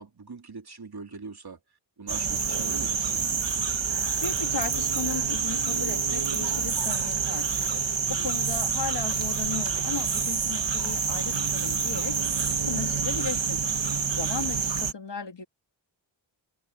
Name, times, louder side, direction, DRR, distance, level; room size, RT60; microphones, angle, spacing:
voice 1, 0.0-1.6 2.0-3.2 7.9-8.3 13.8-14.1, right 4 dB, 55° right, 3.2 m, -43 dB
sound 1, 2.1-14.9, right 6 dB, 70° right, 1.9 m, -27 dB
voice 2, 4.2-7.8 8.1-12.1 12.6-13.6 14.1-15.4, left 5 dB, 65° left, 3.2 m, -36 dB
wide cardioid pair, 60°, 46 cm